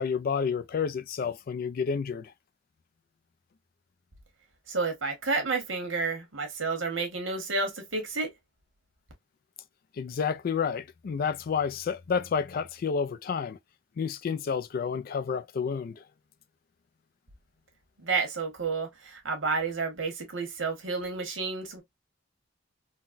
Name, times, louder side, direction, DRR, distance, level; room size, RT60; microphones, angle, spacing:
voice 1, 0.0-2.3 9.9-13.6 14.0-16.0, left 6 dB, 50° left, 0.3 m, -30 dB
voice 2, 4.7-8.3 18.0-21.8, right 4 dB, 85° right, 1.3 m, -30 dB
3.9 x 2.1 x 2.4 m
head